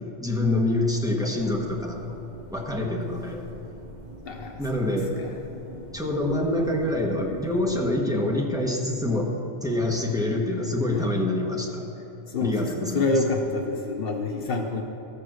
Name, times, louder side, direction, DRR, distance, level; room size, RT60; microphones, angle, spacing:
voice 1, 0.2-2.2 2.5-3.5 4.6-5.1 5.9-9.3 9.6-11.8 12.4-13.2, left 1 dB, 5° right, -1 dB, 1.3 m, -26 dB
sound 1, 1.4-8.0, right 1 dB, 45° right, 1.0 m, -45 dB
voice 2, 4.2-5.9 10.9-11.1 12.3-14.8, left 3 dB, 65° left, 2 dB, 0.9 m, -29 dB
13.0 x 6.9 x 6.3 m, 2.9 s
omnidirectional pair, 1.1 m